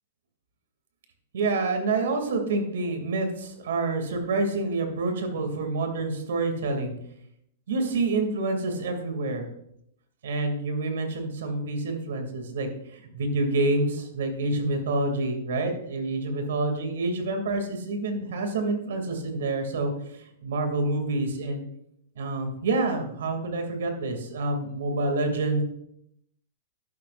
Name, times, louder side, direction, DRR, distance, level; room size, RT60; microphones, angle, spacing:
voice 1, 1.3-6.9 7.7-9.4 10.2-21.6 22.2-25.6, right 2 dB, 75° right, 5 dB, 2.6 m, -27 dB
12.0 x 11.0 x 2.6 m, 0.74 s
hypercardioid pair, 160°, 0 cm